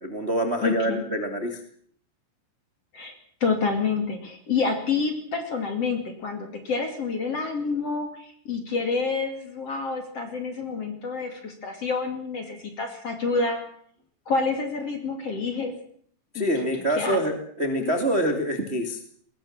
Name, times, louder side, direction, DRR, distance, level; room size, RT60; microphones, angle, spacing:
voice 1, 0.0-1.6 16.3-19.0, right 1 dB, 40° right, 4 dB, 0.9 m, -26 dB
voice 2, 0.6-1.0 2.9-3.1 3.4-13.6 14.3-15.7 16.3-16.5 17.0-17.2 17.8-18.0, left 4 dB, 40° left, 5 dB, 2.6 m, -28 dB
21.5 x 18.5 x 7.4 m, 0.62 s
omnidirectional pair, 5.9 m